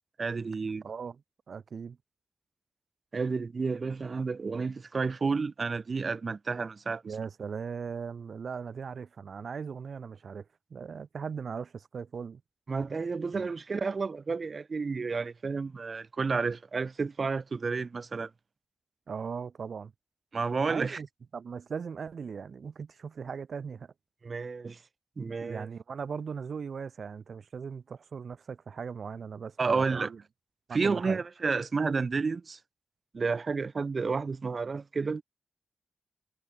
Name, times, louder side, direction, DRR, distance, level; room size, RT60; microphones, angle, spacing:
voice 1, 0.2-0.8 3.1-7.1 12.7-18.3 20.3-21.0 24.2-24.8 25.2-25.7 29.6-30.1 30.7-32.6 33.1-35.2, right 4 dB, 50° right, 0.7 m, -31 dB
voice 2, 0.8-2.0 7.0-12.4 13.3-13.5 19.1-19.9 20.7-21.1 21.3-23.9 25.4-30.2 30.7-31.2, right 6 dB, 70° right, 1.2 m, -39 dB
wide cardioid pair, 85°, 0 cm